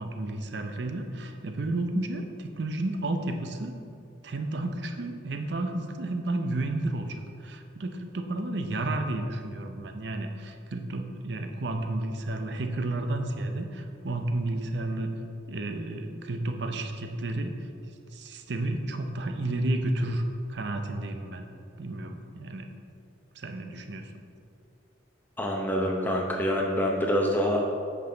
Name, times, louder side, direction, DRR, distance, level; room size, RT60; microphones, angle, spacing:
voice 1, 0.0-3.8 4.2-15.1 15.5-17.5 18.1-20.2 20.5-21.4 21.8-22.7 23.3-24.1, right 2 dB, 60° right, 5 dB, 0.6 m, -32 dB
voice 2, 25.4-27.7, equal, 10° left, -1 dB, 0.7 m, -26 dB
8.1 x 5.5 x 3.9 m, 2.5 s
head